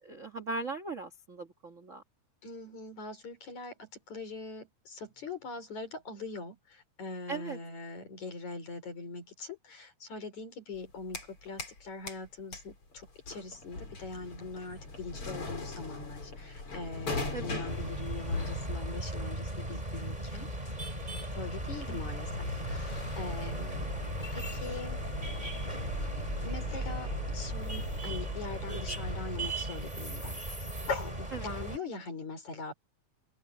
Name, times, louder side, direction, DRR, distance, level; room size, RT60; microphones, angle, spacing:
voice 1, 0.0-2.0 7.3-7.6 17.3-17.6 21.8-22.0 31.4-31.5, right 3 dB, 35° right, 1.4 m, -39 dB
voice 2, 2.4-20.5 21.3-23.9 24.3-25.0 26.4-30.4 30.9-32.7, left 3 dB, 75° left, 5.8 m, -42 dB
sound 1, 10.7-11.8 12.1-29.5, left 3 dB, 45° left, 6.3 m, -41 dB
sound 2, 17.6-31.8, right 1 dB, 15° right, 3.7 m, -37 dB
open air
omnidirectional pair, 3.3 m